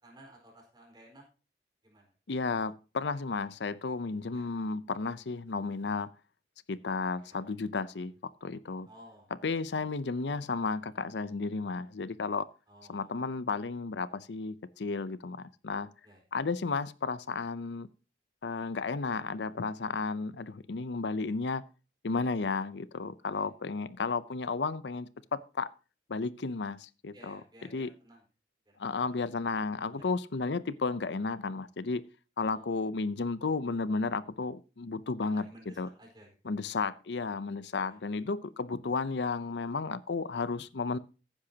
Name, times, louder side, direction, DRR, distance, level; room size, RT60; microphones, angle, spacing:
voice 1, 0.0-1.2 1.8-2.1 4.3-4.5 7.3-7.4 8.9-9.3 12.7-13.1 16.0-16.2 23.3-23.5 27.1-28.2 28.7-29.1 30.0-30.1 32.4-32.7 35.2-36.3 37.9-38.0, right 1 dB, 25° right, 4.5 m, -55 dB
voice 2, 2.3-6.1 6.7-8.1 8.4-8.9 9.4-12.5 12.9-15.9 16.3-17.9 18.4-21.6 22.0-25.7 26.1-27.4 27.7-27.9 28.8-32.0 32.4-35.5 35.8-35.9 36.4-41.0, left 4 dB, 75° left, 0.6 m, -33 dB
14.5 x 10.0 x 2.8 m
head